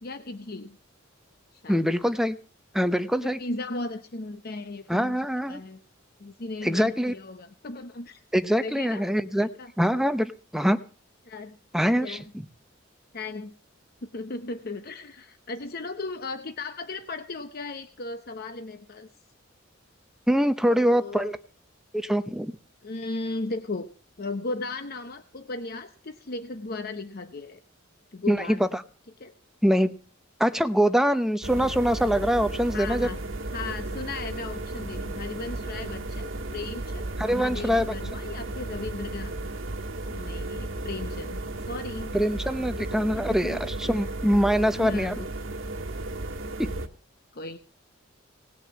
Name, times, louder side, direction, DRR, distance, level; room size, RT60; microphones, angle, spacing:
voice 1, 0.0-0.8 1.5-1.8 3.1-5.2 5.5-5.8 6.2-8.2 8.6-9.1 9.4-9.7 11.2-11.6 12.0-12.3 13.1-13.5 14.0-19.1 20.6-21.3 22.8-23.9 24.2-27.6 28.1-28.7 29.2-29.3 32.7-33.2 33.5-39.3 40.1-42.1 43.2-43.6 44.8-45.3 47.3-47.6, left 3 dB, 50° left, 9 dB, 0.8 m, -36 dB
voice 2, 1.7-2.4 2.7-3.4 4.9-5.6 6.6-7.1 8.3-9.5 9.8-10.8 11.7-12.5 20.3-21.4 21.9-22.5 28.3-28.8 29.6-30.0 30.4-33.1 37.2-37.9 42.1-45.2 46.6-46.7, equal, ahead, 10 dB, 0.7 m, -24 dB
sound 1, 31.4-46.9, right 2 dB, 75° right, 1.5 m, -34 dB
18.5 x 6.7 x 8.6 m, 0.40 s
head